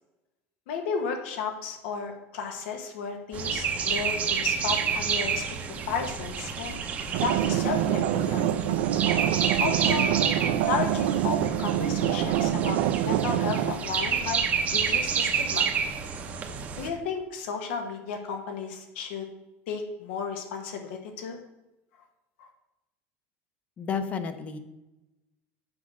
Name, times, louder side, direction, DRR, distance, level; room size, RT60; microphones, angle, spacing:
voice 1, 0.7-5.4 5.7-6.8 7.2-8.5 9.6-10.2 10.4-14.4 14.7-15.7 16.8-19.3 19.7-21.4 22.4-22.5, left 5 dB, 85° left, 4 dB, 1.3 m, -33 dB
sound 1, 3.3-16.9, right 6 dB, 25° right, 0.7 m, -29 dB
sound 2, 7.1-13.7, right 11 dB, 65° right, 0.5 m, -26 dB
voice 2, 23.8-24.6, left 6 dB, 20° left, 10 dB, 0.6 m, -31 dB
7.7 x 6.0 x 6.2 m, 0.98 s
cardioid pair, 180°, 6 cm